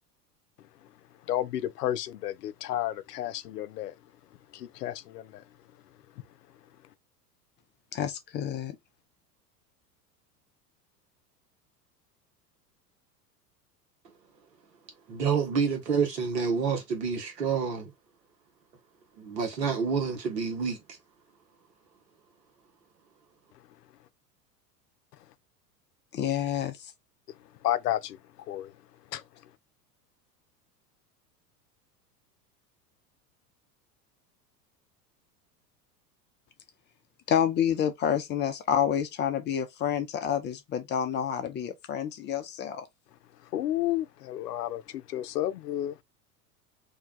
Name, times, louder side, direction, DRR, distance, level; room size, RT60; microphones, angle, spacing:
voice 1, 1.2-3.9 4.5-5.4 27.6-28.2 28.5-28.7 29.1-29.2 43.4-46.0, left 13 dB, 75° left, 0.6 m, -31 dB
voice 2, 7.9-8.8 26.1-26.9 37.3-42.8, left 9 dB, 25° left, 0.5 m, -28 dB
voice 3, 15.1-17.9 19.2-20.8, right 6 dB, 80° right, 1.3 m, -28 dB
2.8 x 2.2 x 3.7 m
hypercardioid pair, 85°, 48 cm